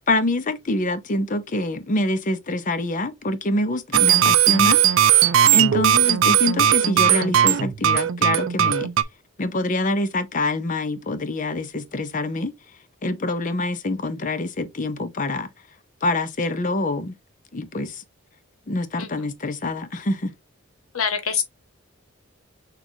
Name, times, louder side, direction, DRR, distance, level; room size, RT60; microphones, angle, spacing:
voice 1, 0.1-4.8 5.1-5.2 5.5-8.9 9.4-12.5 13.0-15.5 16.0-17.1 17.5-18.0 18.7-20.3, left 2 dB, 40° left, 0.6 m, -25 dB
sound 1, 3.9-9.0, right 10 dB, 65° right, 0.4 m, -18 dB
voice 2, 20.9-21.4, left 7 dB, 90° left, 1.1 m, -25 dB
6.3 x 2.4 x 2.8 m
head